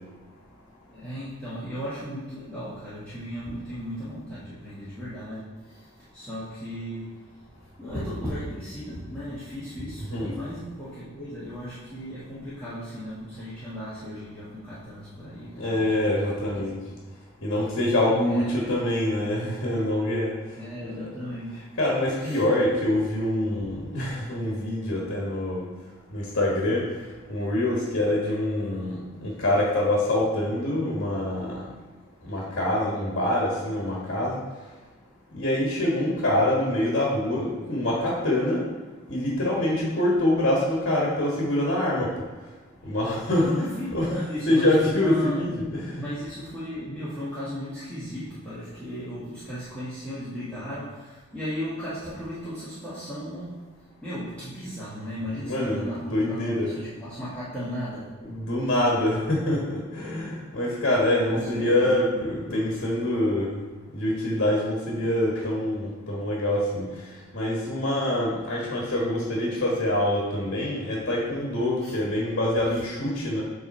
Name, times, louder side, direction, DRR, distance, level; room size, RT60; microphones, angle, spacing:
voice 1, 0.9-17.0 18.2-18.8 20.5-21.7 22.2-22.4 42.8-43.0 43.4-58.3 61.2-62.9 71.8-72.0 72.6-72.8, equal, 5° left, -12 dB, 1.3 m, -36 dB
voice 2, 15.6-16.8 17.4-20.3 21.8-25.6 26.1-26.8 27.3-31.6 32.2-34.4 35.3-38.6 39.1-42.1 42.8-43.7 43.9-44.1 44.5-46.0 55.4-56.7 58.2-63.6 63.9-66.9 67.3-73.4, left 1 dB, 55° left, -3 dB, 1.3 m, -25 dB
8.0 x 3.3 x 4.2 m, 1.3 s
head